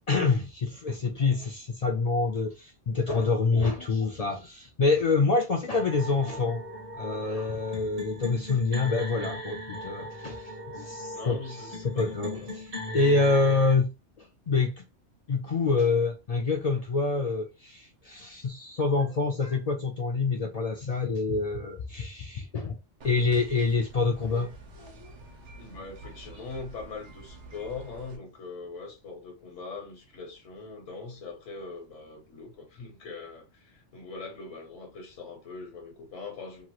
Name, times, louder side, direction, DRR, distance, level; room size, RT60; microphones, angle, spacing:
voice 1, 0.1-6.6 7.0-10.4 10.7-11.4 11.8-13.9 14.2-14.8 15.3-22.8 23.0-24.5 24.8-25.1, left 3 dB, 55° left, 0.4 m, -26 dB
sound 1, 5.7-13.7, left 1 dB, 35° right, 0.8 m, -38 dB
voice 2, 11.1-13.0 24.2-24.5 25.5-36.7, left 4 dB, 80° left, 1.2 m, -42 dB
sound 2, 23.0-28.2, right 2 dB, 70° right, 1.0 m, -48 dB
2.9 x 2.4 x 2.9 m
omnidirectional pair, 1.3 m